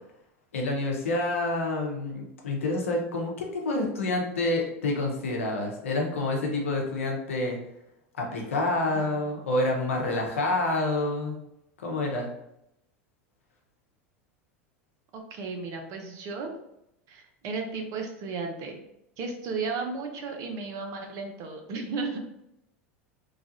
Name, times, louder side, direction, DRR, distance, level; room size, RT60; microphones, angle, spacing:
voice 1, 0.5-7.6 8.2-11.3 11.8-12.3, left 2 dB, 80° left, 1 dB, 0.7 m, -28 dB
voice 2, 8.9-9.2 15.1-16.5 17.1-18.8 19.2-22.2, right 4 dB, 50° right, 4 dB, 0.7 m, -34 dB
3.1 x 2.4 x 2.6 m, 0.82 s
hypercardioid pair, 85°, 7 cm